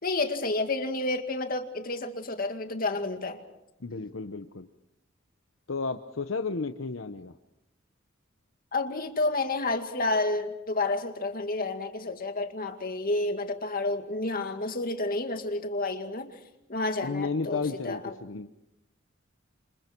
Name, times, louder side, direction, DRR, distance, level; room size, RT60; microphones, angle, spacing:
voice 1, 0.0-3.4 8.7-16.4 16.7-18.1, left 2 dB, 45° left, 6 dB, 2.2 m, -30 dB
voice 2, 3.8-4.7 5.7-7.3 17.0-18.5, left 4 dB, 70° left, 7 dB, 0.9 m, -33 dB
29.0 x 26.0 x 4.6 m, 0.88 s
head